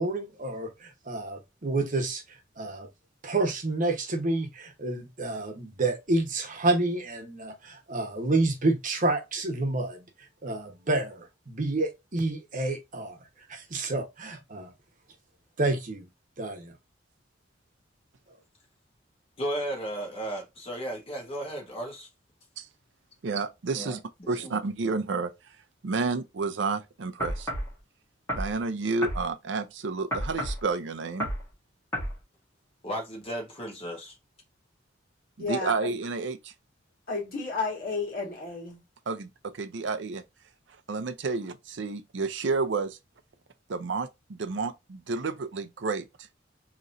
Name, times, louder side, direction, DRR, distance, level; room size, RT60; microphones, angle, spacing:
voice 1, 0.0-2.9 3.2-10.1 10.4-13.2 13.5-14.7 15.6-16.0 16.4-16.7, right 2 dB, 45° right, 1.0 m, -29 dB
voice 2, 19.4-22.1 23.7-24.5 32.8-34.1, right 1 dB, 35° left, 1.5 m, -35 dB
voice 3, 23.2-24.0 24.3-25.3 25.8-27.5 28.3-31.3 35.4-36.5 39.1-40.2 40.9-43.0 43.7-46.0, right 4 dB, 70° right, 0.6 m, -30 dB
sound 1, 27.2-27.7 28.3-28.5 29.0-29.2 30.1-30.6 31.2-31.4 31.9-32.1, equal, 15° left, 1.7 m, -30 dB
voice 4, 35.4-35.9 37.1-38.8, left 3 dB, 50° left, 2.0 m, -32 dB
3.8 x 3.0 x 2.5 m
head